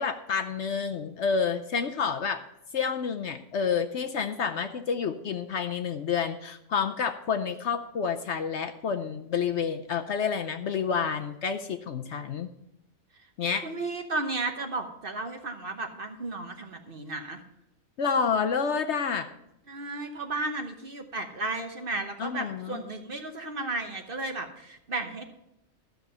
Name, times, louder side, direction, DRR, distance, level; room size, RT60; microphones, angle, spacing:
voice 1, 0.0-2.4 2.7-12.5 13.4-13.7 18.0-19.3 22.2-22.8, left 6 dB, 60° left, 7 dB, 0.9 m, -29 dB
voice 2, 13.6-17.4 19.7-25.2, right 2 dB, 45° right, 6 dB, 1.0 m, -34 dB
13.0 x 6.9 x 5.5 m, 0.83 s
omnidirectional pair, 1.5 m